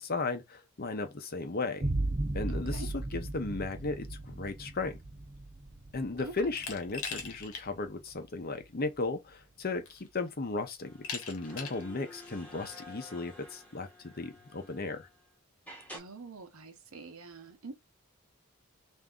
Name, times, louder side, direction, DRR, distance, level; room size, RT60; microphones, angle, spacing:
voice 1, 0.0-1.9 2.3-5.0 5.9-15.1, left 3 dB, 45° left, 0.7 m, -36 dB
sound 1, 1.8-9.2, right 2 dB, 35° right, 0.7 m, -37 dB
voice 2, 2.5-2.9 6.2-6.3 15.9-17.7, right 3 dB, 75° right, 0.9 m, -46 dB
Glass, 6.6-7.7 8.1-8.2 9.3-9.4 9.9-10.3 11.0-11.9, left 6 dB, 90° left, 1.1 m, -40 dB
sound 2, 10.8-15.2 15.7-16.0, left 1 dB, 5° left, 1.0 m, -51 dB
3.5 x 2.7 x 3.7 m
head